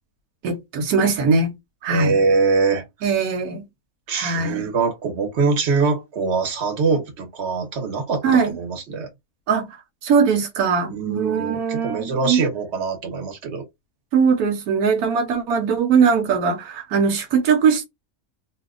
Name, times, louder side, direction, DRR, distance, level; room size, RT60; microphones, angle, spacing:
voice 1, 0.4-1.5 1.8-2.2 3.0-3.6 4.1-4.7 8.2-8.5 9.5-9.7 10.0-12.4 14.1-17.9, right 5 dB, 85° right, 1.3 m, -20 dB
voice 2, 1.9-2.8 4.1-9.1 10.9-13.6, right 4 dB, 50° right, 1.2 m, -23 dB
2.8 x 2.2 x 3.6 m
omnidirectional pair, 1.6 m